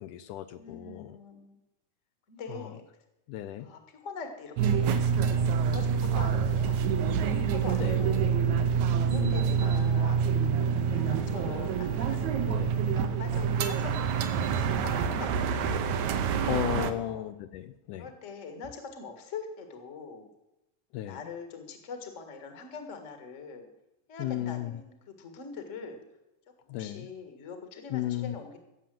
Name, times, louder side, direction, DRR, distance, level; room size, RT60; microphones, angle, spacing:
voice 1, 0.0-1.2 2.5-2.7 3.3-3.7 7.8-8.0 9.1-9.8 11.5-11.6 12.5-12.8 16.5-18.1 20.9-21.2 24.2-24.7 26.7-27.1 27.9-28.4, left 13 dB, 80° left, 11 dB, 2.1 m, -35 dB
voice 2, 0.5-1.6 2.3-2.8 3.6-6.8 7.2-8.5 9.1-10.2 10.9-14.3 14.6-15.8 16.8-17.2 17.9-20.3 21.1-23.7 24.1-26.0 26.7-28.6, left 4 dB, 30° left, 6 dB, 1.4 m, -43 dB
sound 1, 4.6-16.9, right 7 dB, 70° right, 2.1 m, -27 dB
16.0 x 7.3 x 7.6 m, 0.92 s
omnidirectional pair, 3.8 m